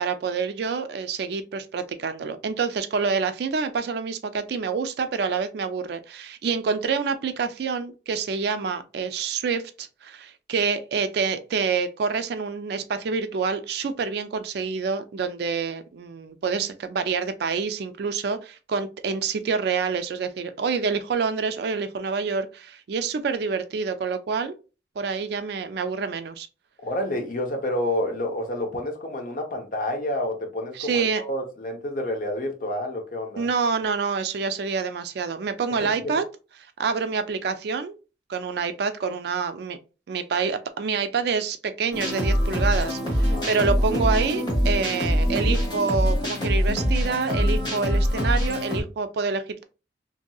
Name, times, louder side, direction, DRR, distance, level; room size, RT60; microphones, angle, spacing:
voice 1, 0.0-24.5 25.0-26.5 30.7-31.2 33.4-36.2 36.8-37.9 38.3-39.8 40.1-49.6, right 5 dB, 60° right, 0.3 m, -27 dB
voice 2, 26.8-33.5 35.7-36.1 43.3-43.5, left 1 dB, 45° left, 0.7 m, -29 dB
sound 1, 41.9-48.8, equal, 25° left, 1.1 m, -23 dB
2.7 x 2.6 x 2.2 m
head